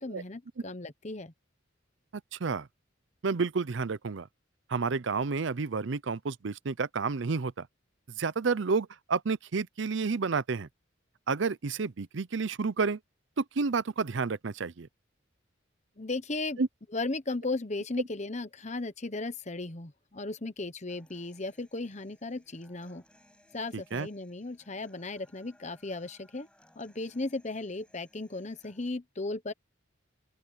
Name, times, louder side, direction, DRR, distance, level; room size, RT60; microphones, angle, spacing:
voice 1, 0.0-1.3 16.0-16.6 16.9-23.0 23.5-26.5 26.7-29.5, left 2 dB, 35° left, 1.1 m, -36 dB
voice 2, 2.3-2.7 3.2-4.3 4.7-7.7 8.2-10.7 11.3-13.0 13.4-14.9 16.6-16.7 23.7-24.1, right 4 dB, 65° right, 0.6 m, -30 dB
Human voice / Acoustic guitar, 20.9-28.9, left 1 dB, 5° left, 7.3 m, -64 dB
open air
head